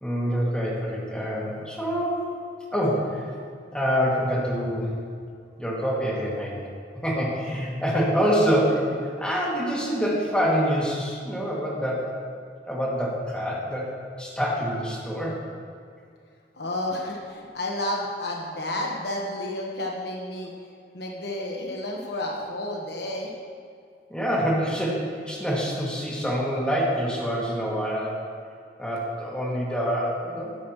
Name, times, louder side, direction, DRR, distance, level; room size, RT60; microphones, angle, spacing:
voice 1, 0.0-2.3 2.7-3.2 3.7-4.9 5.6-6.7 7.0-12.1 12.7-15.4 24.1-28.2 28.8-30.6, equal, 5° left, -6 dB, 2.4 m, -26 dB
voice 2, 16.5-20.5 20.9-23.3, left 1 dB, 65° left, -1 dB, 1.3 m, -31 dB
13.0 x 11.5 x 3.2 m, 2.3 s
head